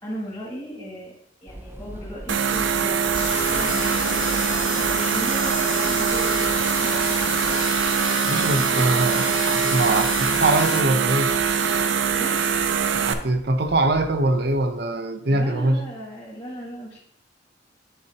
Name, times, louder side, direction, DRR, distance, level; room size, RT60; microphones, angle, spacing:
voice 1, 0.0-1.2 1.4-4.0 4.9-7.2 8.5-9.0 12.2-12.4 15.3-17.0, equal, 25° left, -9 dB, 2.2 m, -36 dB
sound 1, 1.5-14.7, right 1 dB, 10° right, 0.5 m, -42 dB
sound 2, 2.3-13.1, right 6 dB, 90° right, 0.5 m, -23 dB
sound 3, 3.1-10.8, left 12 dB, 75° left, 0.4 m, -33 dB
voice 2, 8.2-11.3 13.0-15.8, right 2 dB, 60° right, 6 dB, 0.8 m, -23 dB
11.0 x 4.3 x 2.9 m, 0.71 s
head